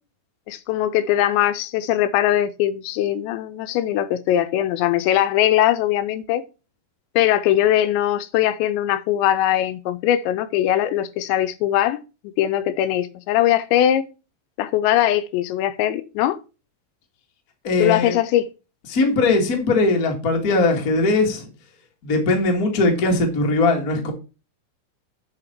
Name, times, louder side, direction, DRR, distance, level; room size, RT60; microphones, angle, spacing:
voice 1, 0.5-6.4 7.2-12.0 12.4-14.0 14.6-16.4 17.8-18.5, left 12 dB, 80° left, 2.8 m, -20 dB
voice 2, 17.6-18.1 18.9-21.5 22.0-24.1, left 3 dB, 50° left, 1.0 m, -20 dB
8.9 x 5.8 x 4.5 m
omnidirectional pair, 5.3 m